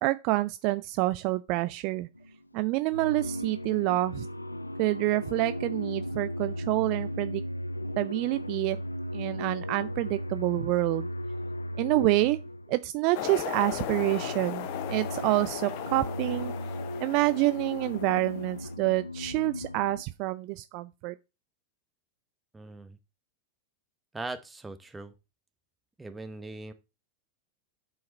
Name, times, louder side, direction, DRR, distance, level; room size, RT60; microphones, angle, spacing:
voice 1, 0.0-2.1 2.5-4.3 4.8-7.4 8.0-8.8 9.1-11.1 11.8-12.4 12.7-16.5 17.0-21.1, right 19 dB, 45° right, 0.4 m, -27 dB
sound 1, 2.2-2.5 2.9-12.9 13.5-20.0, left 1 dB, 85° left, 0.4 m, -36 dB
sound 2, 13.1-18.7, left 11 dB, 45° left, 0.8 m, -37 dB
voice 2, 22.5-23.0 24.1-25.1 26.0-26.7, right 2 dB, 10° right, 1.2 m, -40 dB
10.0 x 4.8 x 4.3 m
figure-of-eight pair, 90°, 0 cm